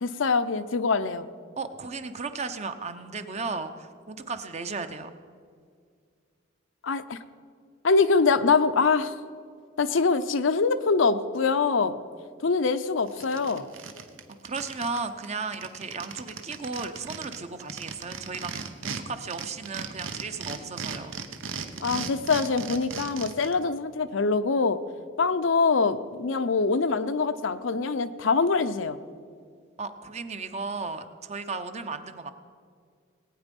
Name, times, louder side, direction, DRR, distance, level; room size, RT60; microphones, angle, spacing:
voice 1, 0.0-1.3 6.8-7.2 7.8-9.1 9.8-12.0 12.4-13.7 21.8-24.8 25.2-29.0, left 4 dB, 70° left, 11 dB, 0.6 m, -24 dB
voice 2, 1.6-5.1 14.4-21.1 29.8-32.3, right 4 dB, 35° right, 9 dB, 0.7 m, -35 dB
sound 1, 12.7-12.8 13.1-15.0 15.2-15.3 15.5-19.0 19.3-23.5, right 5 dB, 85° right, 1.0 m, -36 dB
19.0 x 9.1 x 5.3 m, 2.1 s
head